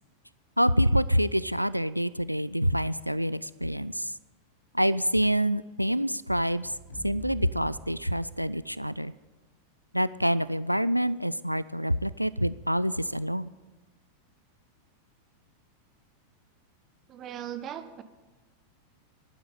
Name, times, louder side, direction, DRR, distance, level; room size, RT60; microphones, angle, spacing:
voice 1, 0.6-4.1 4.7-6.7 7.0-9.1 9.9-13.5, equal, 90° right, 17 dB, 0.3 m, -26 dB
sound 1, 6.6-8.9, equal, 70° left, 3.8 m, -45 dB
voice 2, 17.1-18.0, right 10 dB, 30° right, 11 dB, 1.1 m, -38 dB
11.5 x 9.3 x 8.6 m, 1.2 s
figure-of-eight pair, 90°, 0 cm